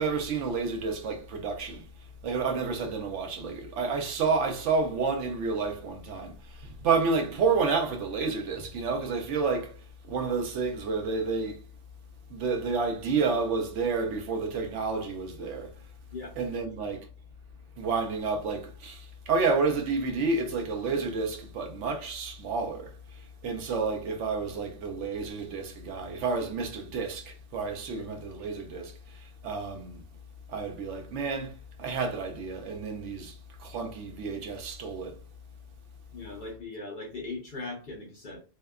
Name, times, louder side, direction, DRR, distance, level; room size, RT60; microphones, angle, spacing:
voice 1, 0.0-1.9 2.2-9.8 10.0-11.6 12.3-15.7 16.4-17.1 17.8-30.0 30.5-35.2, right 4 dB, 70° right, 0.9 m, -30 dB
voice 2, 36.1-38.4, left 3 dB, 55° left, 0.6 m, -39 dB
2.7 x 2.1 x 2.2 m
omnidirectional pair, 1.3 m